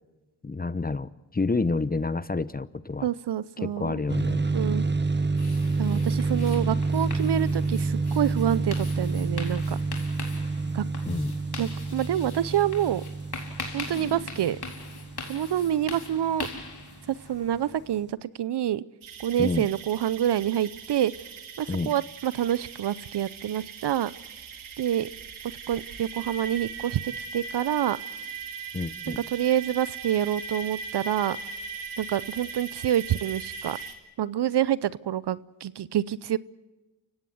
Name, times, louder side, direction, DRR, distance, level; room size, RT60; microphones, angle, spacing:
voice 1, 0.4-3.1 3.6-4.4 11.1-11.3 19.4-19.7 21.7-21.9 28.7-29.2, left 3 dB, 20° left, 17 dB, 0.8 m, -29 dB
voice 2, 3.0-4.0 4.5-4.8 5.8-9.8 10.7-10.8 11.6-13.0 13.7-14.6 15.3-16.5 17.1-18.8 19.2-21.1 21.6-24.1 24.8-25.1 25.7-28.0 29.1-31.4 32.0-33.8 34.2-36.4, right 11 dB, 60° right, 20 dB, 0.7 m, -27 dB
sound 1, 4.1-16.5, right 3 dB, 20° right, 1.2 m, -28 dB
sound 2, 5.4-18.0, left 4 dB, 55° left, 4.3 m, -41 dB
sound 3, 19.0-33.9, right 5 dB, 80° right, 2.4 m, -39 dB
29.0 x 16.5 x 7.9 m, 1.1 s
supercardioid pair, 45°, 48 cm